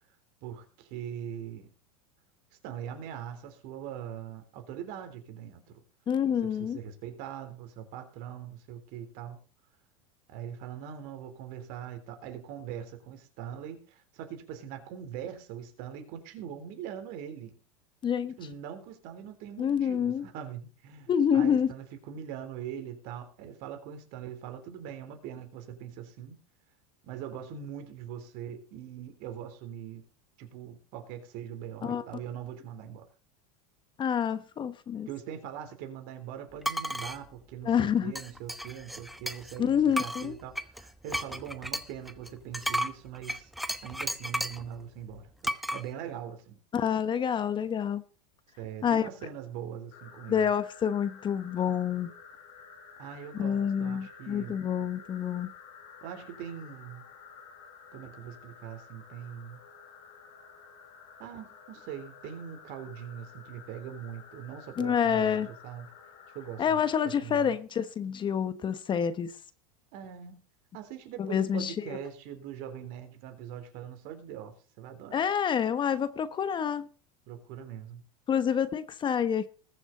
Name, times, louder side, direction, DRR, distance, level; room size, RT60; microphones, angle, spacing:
voice 1, 0.4-1.7 2.6-5.8 6.4-9.4 10.3-17.6 18.4-26.4 27.0-30.0 30.4-33.1 35.1-43.5 43.8-46.6 48.6-50.5 53.0-54.6 56.0-57.0 57.9-59.6 61.2-65.9 66.3-66.8 67.0-67.6 69.9-70.4 70.7-75.2 77.3-78.0, right 9 dB, 55° right, 7 dB, 3.6 m, -42 dB
voice 2, 6.1-6.8 18.0-18.4 19.6-20.3 21.1-21.7 31.8-32.0 34.0-35.1 37.6-38.1 39.6-40.3 46.7-48.0 48.8-49.1 50.3-52.1 53.3-55.5 64.8-65.5 66.6-69.3 71.2-72.0 75.1-76.9 78.3-79.5, left 8 dB, 25° left, 13 dB, 1.1 m, -27 dB
sound 1, 36.6-37.2 38.2-39.6 39.9-44.7 45.4-45.8, equal, ahead, 0.8 m, -33 dB
sound 2, 49.9-67.2, left 6 dB, 70° left, 5.8 m, -52 dB
20.5 x 7.1 x 4.1 m, 0.38 s
supercardioid pair, 125°, 18 cm